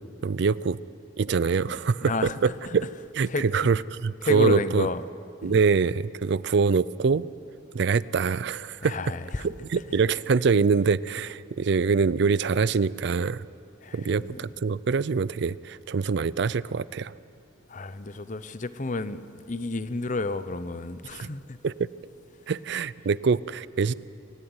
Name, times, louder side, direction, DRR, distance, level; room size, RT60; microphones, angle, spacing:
voice 1, 0.2-0.8 1.2-2.1 2.4-2.9 3.2-4.9 5.4-7.3 7.7-9.0 9.4-13.4 13.9-17.1 21.2-21.3 21.6-21.9 22.5-23.9, right 5 dB, 60° right, 0.4 m, -24 dB
voice 2, 1.6-2.4 2.6-2.8 3.3-3.7 4.2-5.0 5.4-5.6 8.8-9.5 13.8-14.4 17.7-21.6, left 3 dB, 40° left, 0.7 m, -31 dB
24.0 x 14.0 x 9.6 m
head